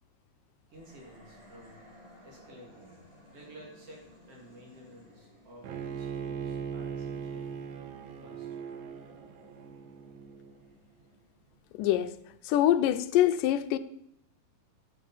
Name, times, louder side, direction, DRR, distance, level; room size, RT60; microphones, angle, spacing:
sound 1, 0.7-12.1, left 1 dB, 15° right, 5.0 m, -58 dB
voice 1, 0.7-1.8 2.2-3.0 3.3-7.5 8.2-8.5, equal, 45° right, 3.7 m, -52 dB
Bowed string instrument, 5.6-10.7, right 7 dB, 80° right, 2.5 m, -39 dB
voice 2, 11.7-12.1 12.4-13.8, left 12 dB, 80° left, 2.2 m, -24 dB
12.0 x 8.1 x 5.6 m
omnidirectional pair, 3.9 m